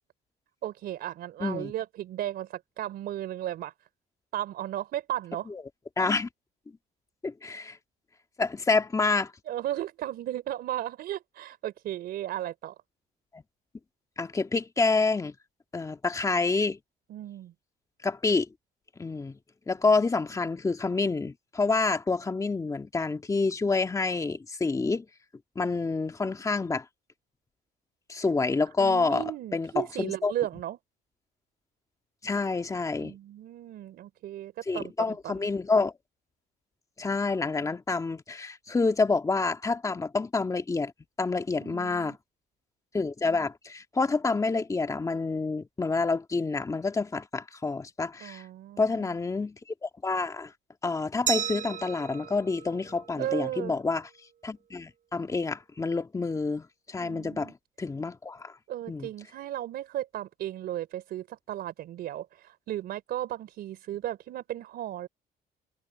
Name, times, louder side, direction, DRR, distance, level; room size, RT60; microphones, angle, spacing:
voice 1, 0.6-3.7 4.3-5.5 9.5-12.8 17.1-17.5 28.8-30.8 33.0-35.5 41.6-42.2 48.2-49.0 53.2-53.8 57.0-57.5 58.7-65.1, right 12 dB, 70° right, 3.8 m, -35 dB
voice 2, 1.4-1.7 6.0-6.3 7.2-7.8 8.4-9.3 13.3-13.4 14.2-15.4 15.7-16.8 18.0-18.5 19.0-19.4 19.7-25.1 25.6-26.9 28.1-30.3 32.2-33.1 34.7-35.9 37.0-40.9 41.2-42.2 42.9-48.4 48.8-50.5 50.8-54.1 54.4-58.5 58.9-59.1, left 3 dB, 20° left, 1.9 m, -28 dB
Glass, 51.3-54.0, right 9 dB, 50° right, 7.5 m, -35 dB
cardioid pair, 110°, 17 cm